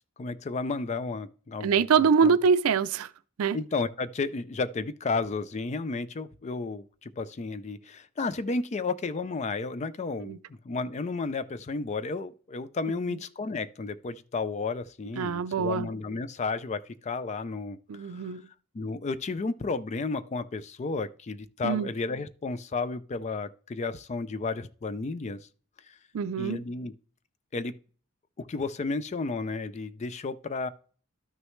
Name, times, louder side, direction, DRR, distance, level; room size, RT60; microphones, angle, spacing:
voice 1, 0.2-1.9 2.2-2.4 3.5-10.4 10.6-18.3 18.7-25.5 26.4-26.9 27.5-27.7 28.4-30.7, left 3 dB, 35° left, 0.4 m, -32 dB
voice 2, 1.6-3.1 3.4-3.6 10.3-10.4 15.2-15.9 17.9-18.4 21.6-21.9 26.1-26.6, right 6 dB, 90° right, 0.4 m, -24 dB
12.0 x 6.3 x 3.1 m
head